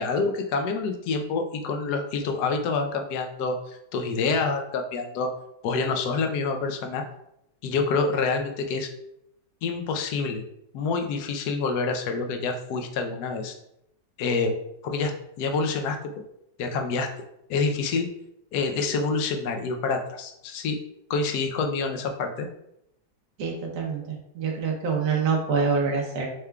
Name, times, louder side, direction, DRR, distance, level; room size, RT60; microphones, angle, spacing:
voice 1, 0.0-5.3 5.6-7.0 7.6-8.9 9.6-10.4 10.7-13.5 14.2-14.5 14.8-15.1 15.4-16.0 16.6-17.1 17.5-18.1 18.5-20.8 21.1-22.5, left 4 dB, 70° left, 5 dB, 1.0 m, -27 dB
voice 2, 23.4-26.3, right 5 dB, 65° right, -1 dB, 1.3 m, -26 dB
6.6 x 3.5 x 2.2 m, 0.80 s
omnidirectional pair, 2.1 m